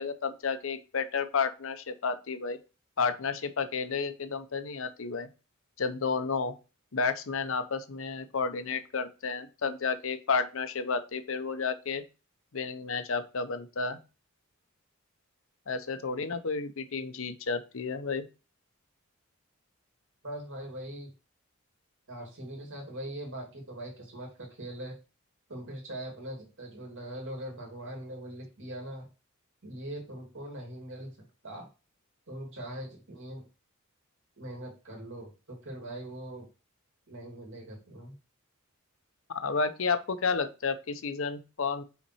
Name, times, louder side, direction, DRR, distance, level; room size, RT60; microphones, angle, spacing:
voice 1, 0.0-2.6 3.0-5.3 5.8-6.5 6.9-12.0 12.5-14.0 15.7-18.3 39.4-41.8, left 5 dB, 70° left, 10 dB, 0.8 m, -31 dB
voice 2, 20.2-21.1 22.1-25.0 25.5-29.1 29.6-31.2 31.4-31.7 32.3-33.5 34.4-36.5 37.1-38.2, right 1 dB, 65° right, 0 dB, 2.4 m, -41 dB
5.8 x 4.4 x 4.2 m, 0.31 s
head